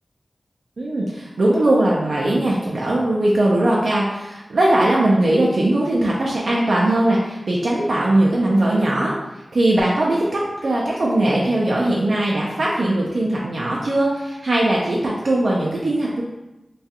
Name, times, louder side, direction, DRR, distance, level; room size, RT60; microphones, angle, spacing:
voice 1, 0.8-9.1 9.5-16.2, right 1 dB, 80° right, -5 dB, 0.4 m, -19 dB
2.3 x 2.3 x 2.7 m, 0.99 s
wide cardioid pair, 60°, 0 cm